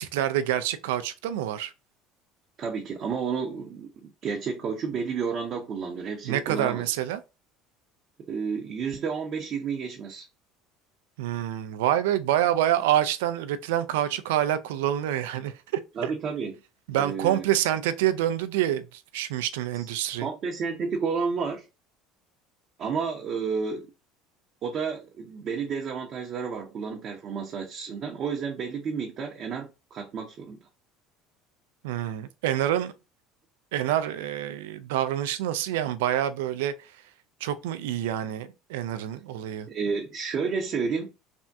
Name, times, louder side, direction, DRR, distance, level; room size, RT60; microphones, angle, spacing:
voice 1, 0.0-1.7 6.2-7.2 11.2-16.1 16.9-20.3 31.8-32.9 33.7-37.0 37.4-39.7, right 11 dB, 80° right, 0.3 m, -27 dB
voice 2, 2.6-3.9 4.2-6.9 8.3-10.3 16.0-16.5 17.0-17.4 19.7-19.9 20.2-21.6 22.8-23.9 24.6-30.6 39.7-41.1, right 5 dB, 50° right, 0.7 m, -31 dB
3.4 x 2.1 x 2.6 m
hypercardioid pair, 80°, 0 cm